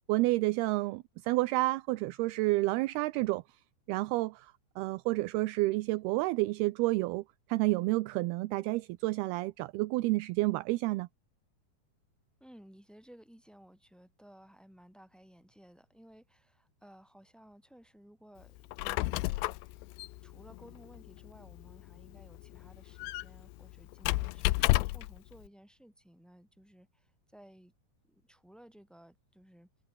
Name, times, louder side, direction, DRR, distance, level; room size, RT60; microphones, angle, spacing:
voice 1, 0.1-3.4 3.9-7.2 7.5-11.1, right 20 dB, 80° right, 2.5 m, -30 dB
voice 2, 12.4-19.4 20.2-27.7 28.0-29.7, equal, ahead, 7.0 m, -57 dB
Squeak, 18.6-25.2, left 20 dB, 90° left, 2.9 m, -33 dB
omnidirectional pair, 4.9 m